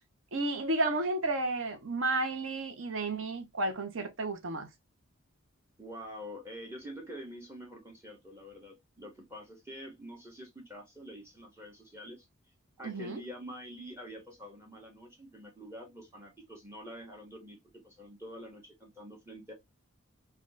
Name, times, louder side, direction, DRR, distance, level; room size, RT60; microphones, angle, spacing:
voice 1, 0.3-4.7 12.8-13.2, right 2 dB, 65° right, 0.7 m, -32 dB
voice 2, 5.8-12.3 12.8-19.5, equal, 10° right, 0.7 m, -46 dB
3.4 x 2.2 x 2.5 m
head